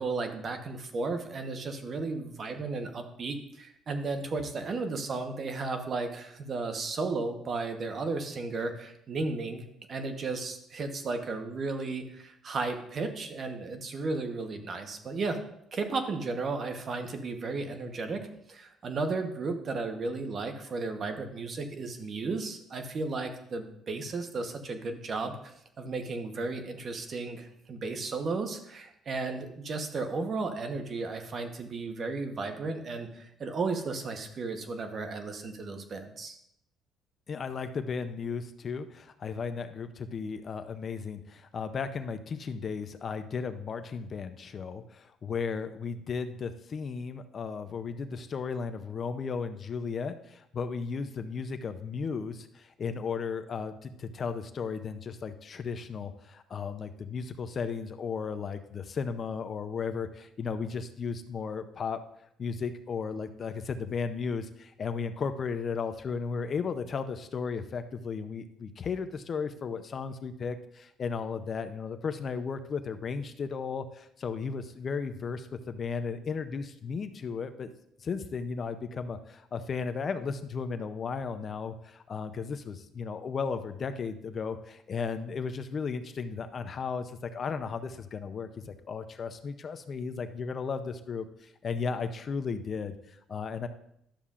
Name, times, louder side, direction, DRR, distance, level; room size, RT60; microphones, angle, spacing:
voice 1, 0.0-15.4 15.7-36.4, right 3 dB, 40° right, 6 dB, 1.0 m, -34 dB
voice 2, 37.3-62.0 62.4-77.7 78.0-93.7, left 5 dB, 40° left, 9 dB, 0.5 m, -35 dB
11.5 x 7.0 x 2.5 m, 0.75 s
cardioid pair, 120°, 0 cm